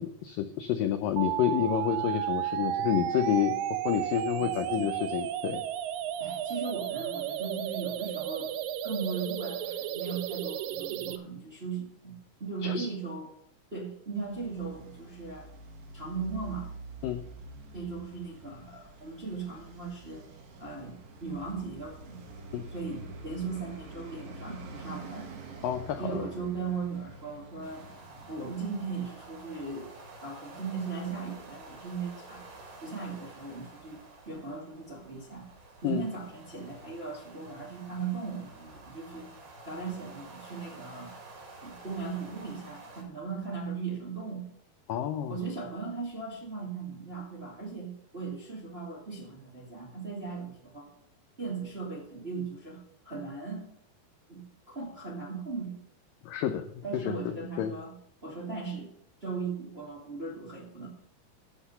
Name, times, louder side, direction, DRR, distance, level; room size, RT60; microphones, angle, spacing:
voice 1, 0.0-3.6 3.8-5.6 12.6-12.9 17.0-17.2 22.5-22.6 25.6-26.2 35.8-36.0 44.9-45.4 56.2-56.7 56.9-57.8, left 10 dB, 85° left, 8 dB, 1.9 m, -29 dB
sound 1, 1.2-11.2, right 11 dB, 85° right, 2.0 m, -33 dB
voice 2, 4.3-4.9 6.2-8.5 8.8-13.3 13.7-15.5 15.9-16.7 17.7-20.3 20.6-22.2 22.7-25.3 26.0-27.9 28.3-29.9 30.2-32.4 32.8-34.0 34.2-35.5 35.8-39.3 39.6-41.1 41.6-44.4 45.3-50.9 51.4-53.7 54.3-54.4 54.7-55.8 56.8-57.9 58.2-58.9 59.2-60.9, right 4 dB, 25° right, -2 dB, 1.5 m, -38 dB
Traffic noise roadway noise, 14.2-29.6, right 3 dB, 60° right, 3.4 m, -47 dB
sound 2, 27.6-43.0, right 2 dB, 45° right, 3.7 m, -50 dB
10.5 x 8.1 x 5.6 m, 0.73 s
omnidirectional pair, 4.8 m